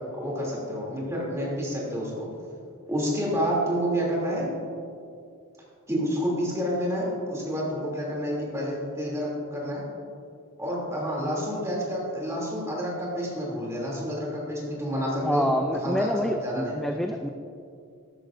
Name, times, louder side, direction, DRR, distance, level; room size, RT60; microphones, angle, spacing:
voice 1, 0.2-2.3 2.9-4.5 5.9-9.8 10.6-15.4 15.7-16.7, equal, 15° right, -4 dB, 2.9 m, -29 dB
voice 2, 15.2-17.3, equal, ahead, 4 dB, 0.4 m, -27 dB
14.0 x 11.0 x 2.6 m, 2.4 s
head